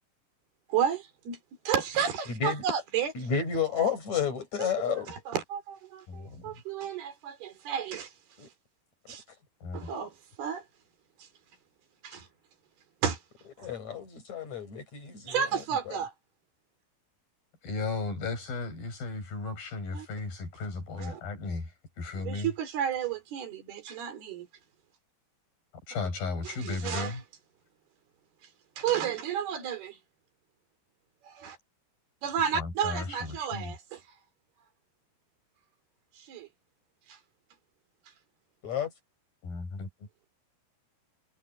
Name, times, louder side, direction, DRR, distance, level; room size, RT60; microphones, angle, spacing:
voice 1, 0.7-1.4 1.7-3.3 4.6-8.1 9.1-9.2 9.7-10.7 11.2-11.3 12.0-12.3 13.0-13.2 13.6-13.7 15.3-16.1 19.9-20.1 21.0-21.2 22.2-24.5 26.4-27.2 28.8-30.0 31.2-31.6 32.2-34.0 36.2-36.5 37.1-37.2, right 8 dB, 80° right, 5.6 m, -32 dB
voice 2, 3.1-5.1 8.4-8.5 13.6-15.5 15.9-16.0 38.6-38.9, left 7 dB, 45° left, 7.9 m, -31 dB
voice 3, 6.1-6.5 9.6-9.9 17.6-21.6 22.0-22.5 25.9-27.2 32.5-33.7 39.4-39.9, left 3 dB, 65° left, 8.6 m, -35 dB
omnidirectional pair, 4.4 m